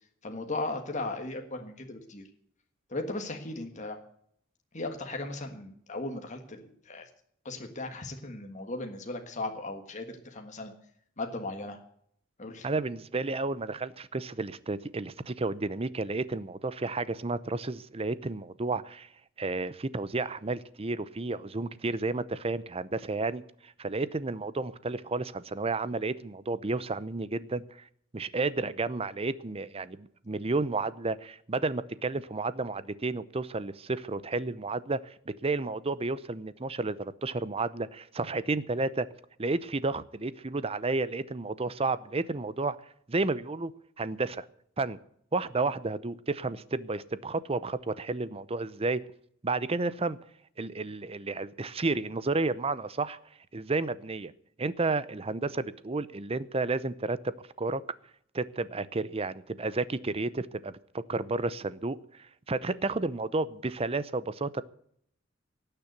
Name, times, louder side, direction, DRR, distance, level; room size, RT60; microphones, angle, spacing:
voice 1, 0.2-2.3 2.9-4.0 4.7-7.1 7.4-10.7 11.2-11.8 12.4-12.7, left 2 dB, 35° left, 4 dB, 1.6 m, -37 dB
voice 2, 12.6-19.1 19.4-27.6 28.1-39.1 39.4-42.8 43.1-43.7 44.0-44.5 44.8-45.0 45.3-49.0 49.4-50.2 50.6-53.2 53.5-54.3 54.6-57.3 57.6-57.8 58.3-60.7 61.1-64.6, right 3 dB, 30° right, 16 dB, 0.6 m, -31 dB
18.0 x 6.8 x 8.0 m, 0.66 s
head